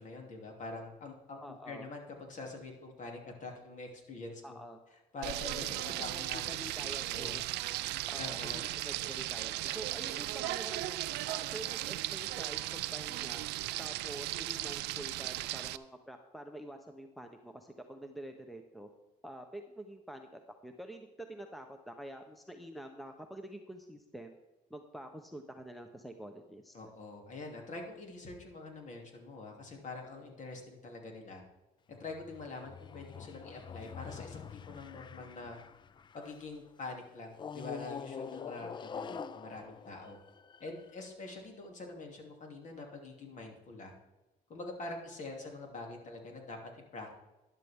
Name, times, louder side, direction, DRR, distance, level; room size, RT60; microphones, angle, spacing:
voice 1, 0.0-4.6 5.1-7.5 8.2-8.6 8.9-9.1 26.7-31.4 31.9-35.6 36.1-40.2 40.6-43.9 44.5-47.1, left 3 dB, 45° left, 1 dB, 2.9 m, -45 dB
voice 2, 1.4-1.9 4.4-4.8 5.9-7.5 8.1-11.0 11.3-13.5 13.8-18.9 19.2-24.3 24.7-26.7 38.6-38.7 39.1-39.3, right 1 dB, ahead, 5 dB, 0.9 m, -47 dB
Frying (food), 5.2-15.8, right 16 dB, 85° right, 0.5 m, -37 dB
sound 1, 31.9-36.5 37.3-40.9, left 7 dB, 30° left, 0.4 m, -46 dB
12.0 x 11.5 x 3.6 m, 1.0 s
cardioid pair, 110°, 17 cm